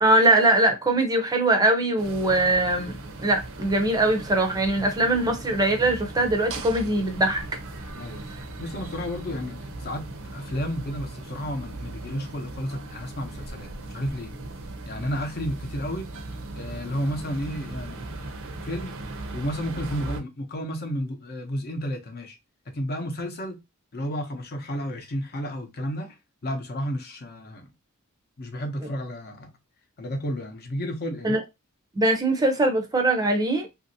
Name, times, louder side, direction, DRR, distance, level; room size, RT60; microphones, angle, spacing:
voice 1, 0.0-7.4 31.2-31.4 32.0-33.7, right 2 dB, 15° right, 0.6 m, -22 dB
sound 1, 2.0-20.2, right 2 dB, 65° right, 0.6 m, -38 dB
voice 2, 8.6-10.0 10.3-14.3 14.9-16.1 16.5-18.3 18.6-19.0 19.3-22.4 22.7-23.6 23.9-26.2 26.4-27.7 28.4-29.5 30.0-31.4, equal, 45° left, 0.8 m, -32 dB
2.9 x 2.6 x 2.6 m
head